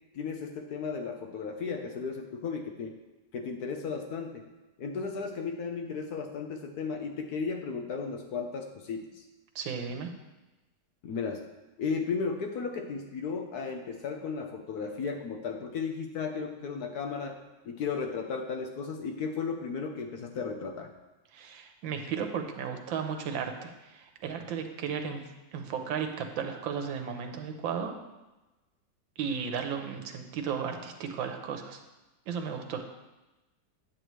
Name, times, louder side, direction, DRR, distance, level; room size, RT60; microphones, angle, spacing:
voice 1, 0.1-3.0 3.3-4.5 4.8-9.2 11.0-11.4 11.8-17.4 17.6-20.9, left 5 dB, 65° left, 4 dB, 1.1 m, -35 dB
voice 2, 9.5-10.1 21.3-25.2 25.5-27.9 29.2-31.8 32.3-32.8, right 7 dB, 80° right, 5 dB, 1.6 m, -34 dB
8.9 x 8.1 x 3.1 m, 1.1 s
omnidirectional pair, 2.1 m